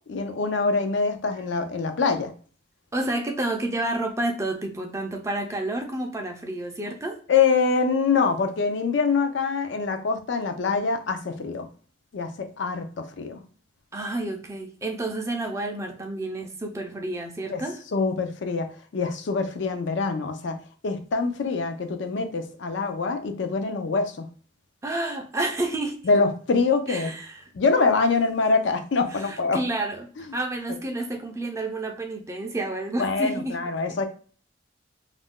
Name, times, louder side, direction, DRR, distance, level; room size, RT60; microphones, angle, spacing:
voice 1, 0.1-2.3 7.3-11.7 12.1-13.4 17.5-17.6 17.9-20.6 20.8-24.3 26.1-27.1 27.5-29.6 30.2-30.4 33.0-34.1, left 4 dB, 70° left, 0.4 m, -24 dB
voice 2, 2.9-7.2 13.9-17.8 24.8-26.0 26.9-27.4 29.2-33.6, right 2 dB, 15° right, 0.4 m, -30 dB
2.5 x 2.2 x 3.5 m
head